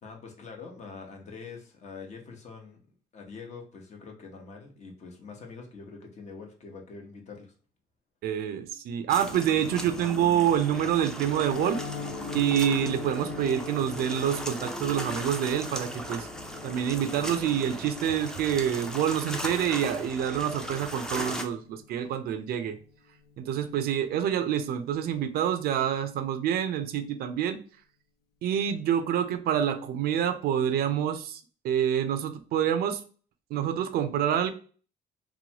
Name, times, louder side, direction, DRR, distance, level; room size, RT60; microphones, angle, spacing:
voice 1, 0.0-2.8 3.1-7.5, left 4 dB, 45° left, 2 dB, 0.9 m, -44 dB
voice 2, 8.2-11.8 12.3-16.3 16.6-22.8 23.4-27.6 28.4-33.0 33.5-34.5, right 9 dB, 65° right, 9 dB, 0.4 m, -27 dB
sound 1, 9.1-21.4, equal, 5° left, 0.5 m, -37 dB
Piano, 11.5-22.4 22.7-22.9 23.2-23.4 23.7-24.0 24.3-24.4, left 5 dB, 70° left, 0.4 m, -43 dB
3.0 x 2.1 x 2.8 m, 0.40 s
cardioid pair, 110°, 17 cm